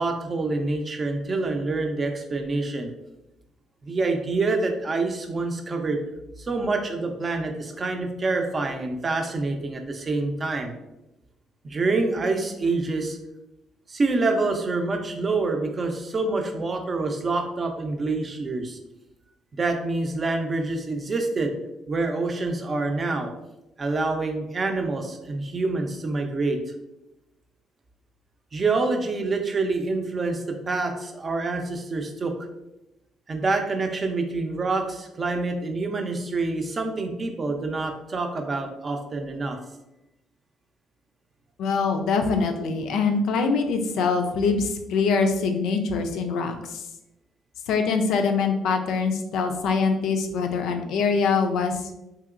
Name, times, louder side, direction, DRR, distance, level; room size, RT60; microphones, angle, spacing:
voice 1, 0.0-2.9 3.8-6.0 6.4-10.7 11.6-13.2 13.9-18.8 19.5-21.5 21.9-23.3 23.8-26.6 28.5-32.3 33.3-39.6, right 3 dB, 40° right, 4 dB, 0.5 m, -26 dB
voice 2, 41.6-46.8 47.7-51.8, left 4 dB, 70° left, 5 dB, 0.4 m, -24 dB
2.9 x 2.8 x 2.4 m, 0.92 s
hypercardioid pair, 50°, 0 cm